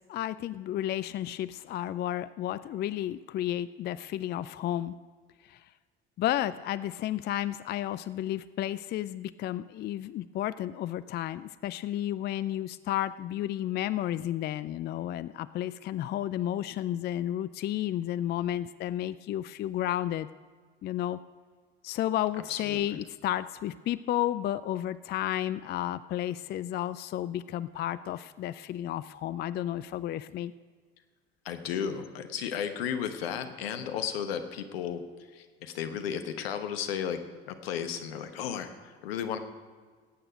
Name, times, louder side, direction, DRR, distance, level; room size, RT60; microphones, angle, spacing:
voice 1, 0.0-5.0 5.4-5.7 6.2-20.3 20.8-21.2 21.8-30.5, left 12 dB, 35° left, 16 dB, 0.4 m, -32 dB
voice 2, 22.5-22.8 31.4-35.0 35.3-37.2 37.5-39.4, left 8 dB, 75° left, 8 dB, 1.1 m, -34 dB
18.0 x 8.9 x 5.1 m, 1.6 s
hypercardioid pair, 60°, 30 cm